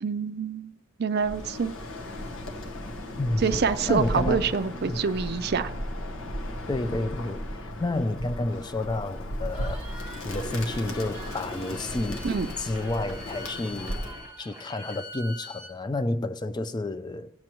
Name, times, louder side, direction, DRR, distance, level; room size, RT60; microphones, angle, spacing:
voice 1, 0.0-1.7 3.4-5.7 12.2-12.5, right 5 dB, 50° right, 0.4 m, -26 dB
Bird, 1.2-14.3, equal, 75° left, 1.1 m, -35 dB
voice 2, 3.2-3.5 3.9-4.6 4.9-5.1 6.7-12.3 12.6-14.0 14.4-17.3, left 2 dB, 20° left, 0.3 m, -30 dB
Cheering, 9.5-15.1, right 2 dB, 5° right, 1.6 m, -47 dB
Bowed string instrument, 10.5-15.7, left 1 dB, 50° left, 2.7 m, -45 dB
15.5 x 7.6 x 3.0 m
head